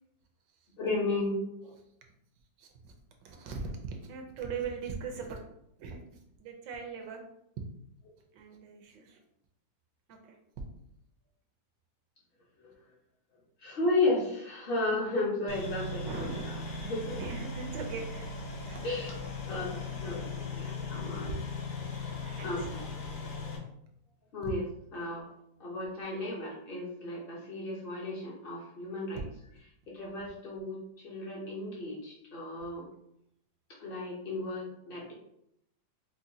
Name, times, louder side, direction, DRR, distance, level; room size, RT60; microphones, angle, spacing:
voice 1, 0.8-1.7 12.6-12.7 13.6-17.2 18.8-19.1 19.4-21.3 22.4-22.8 23.4-23.5 24.3-24.6 24.9-25.3 25.6-29.2 29.9-32.8 33.8-35.1, left 2 dB, 50° left, -3 dB, 0.7 m, -34 dB
voice 2, 2.6-2.9 3.2-5.4 5.8-6.0 6.4-7.2 8.3-9.2 10.1-10.4 16.0-16.6 17.2-19.0 19.9-20.3 20.6-21.1 21.9-22.0 22.3-22.7, right 5 dB, 75° right, 3 dB, 1.2 m, -41 dB
sound 1, 15.5-23.6, left 3 dB, 65° left, 1.2 m, -38 dB
4.8 x 2.2 x 2.7 m, 0.77 s
omnidirectional pair, 2.0 m